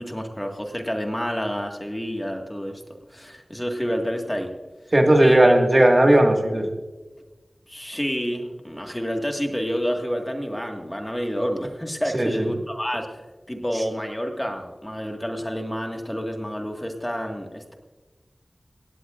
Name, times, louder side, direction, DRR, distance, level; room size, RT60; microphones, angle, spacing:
voice 1, 0.0-2.8 3.1-4.5 5.2-5.5 7.7-17.7, equal, 10° left, 2 dB, 1.7 m, -29 dB
voice 2, 4.9-6.7 12.1-12.4, right 1 dB, 35° right, 3 dB, 1.8 m, -16 dB
17.5 x 17.0 x 2.5 m, 1.2 s
wide cardioid pair, 55°, 0 cm